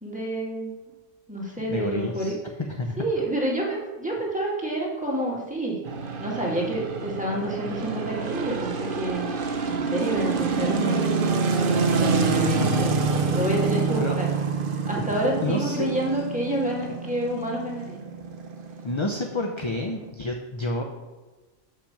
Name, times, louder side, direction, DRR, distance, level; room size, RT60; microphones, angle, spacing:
voice 1, 0.0-0.7 1.3-2.4 3.0-5.8 6.2-9.3 9.7-11.1 11.9-12.9 13.3-14.3 14.9-18.0, right 1 dB, 5° right, -4 dB, 2.0 m, -28 dB
voice 2, 1.7-2.3 2.7-3.0 14.0-14.2 15.4-16.2 18.8-20.8, left 2 dB, 30° left, 3 dB, 0.6 m, -29 dB
sound 1, 5.8-20.1, right 4 dB, 50° right, 0.9 m, -27 dB
6.9 x 5.9 x 6.6 m, 1.2 s
omnidirectional pair, 1.3 m